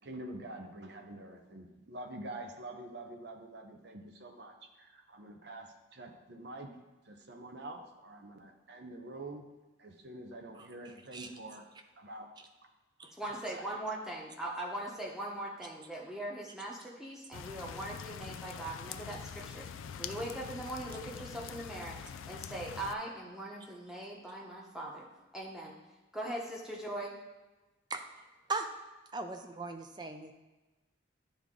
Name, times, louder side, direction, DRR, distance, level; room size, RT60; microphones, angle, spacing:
voice 1, 0.0-6.7 7.0-9.4 9.8-11.7 12.0-12.3 13.3-13.7, right 2 dB, 55° right, 5 dB, 0.7 m, -46 dB
voice 2, 13.1-19.7 20.0-25.1 25.3-25.7 26.1-27.2, right 1 dB, 5° right, -3 dB, 0.9 m, -40 dB
sound 1, 17.3-22.9, left 7 dB, 80° left, 0.3 m, -44 dB
voice 3, 29.1-30.3, right 3 dB, 20° right, 5 dB, 0.4 m, -38 dB
10.0 x 3.5 x 3.7 m, 1.1 s
head